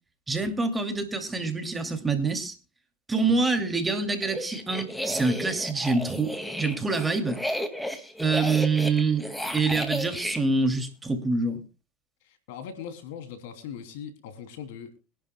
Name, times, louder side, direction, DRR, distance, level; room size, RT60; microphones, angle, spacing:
voice 1, 0.3-2.6 3.1-7.4 8.2-9.2 9.5-11.6, right 3 dB, 15° right, 2.6 m, -26 dB
sound 1, 4.2-10.4, equal, 5° left, 2.2 m, -33 dB
voice 2, 12.2-14.9, left 8 dB, 75° left, 3.0 m, -40 dB
24.5 x 11.5 x 2.3 m
hypercardioid pair, 95°, 0 cm